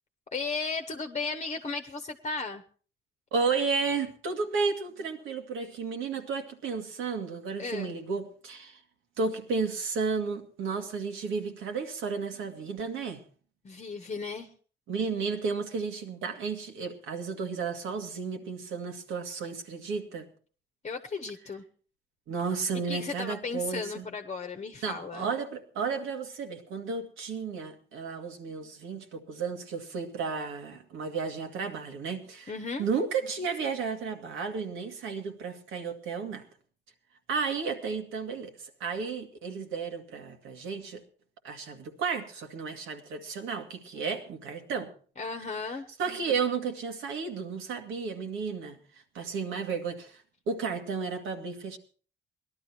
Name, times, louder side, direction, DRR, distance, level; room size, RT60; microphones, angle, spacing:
voice 1, 0.3-2.6 7.6-7.9 13.6-14.5 20.8-21.6 22.9-25.3 32.5-32.9 45.2-45.9, left 4 dB, 35° left, 6 dB, 1.0 m, -35 dB
voice 2, 3.3-8.8 9.2-13.2 14.9-20.3 22.3-24.1 24.8-32.5 32.8-36.5 37.3-38.5 38.8-41.0 41.4-44.9 46.0-48.8 49.1-51.8, right 5 dB, 85° right, 4 dB, 2.0 m, -33 dB
18.0 x 12.0 x 4.4 m, 0.42 s
cardioid pair, 90°, 20 cm